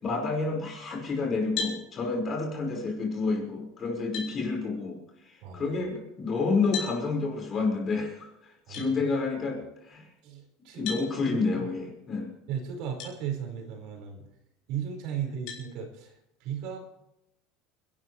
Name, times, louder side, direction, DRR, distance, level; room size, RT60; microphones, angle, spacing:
voice 1, 0.0-5.0 5.5-8.3 8.7-10.1 10.8-12.3, left 4 dB, 30° left, 1 dB, 5.3 m, -29 dB
sound 1, 1.6-1.8 3.5-3.6 4.1-4.3 6.7-7.0 8.7-8.9 10.9-11.1 13.0-13.1 13.8-13.9 15.5-15.7, left 5 dB, 55° left, 5.4 m, -34 dB
voice 2, 5.4-5.7 8.7-8.8 10.2-11.8 12.5-14.3 14.7-16.8, right 8 dB, 60° right, 3 dB, 5.1 m, -36 dB
29.5 x 12.5 x 3.3 m, 0.84 s
cardioid pair, 155°, 0 cm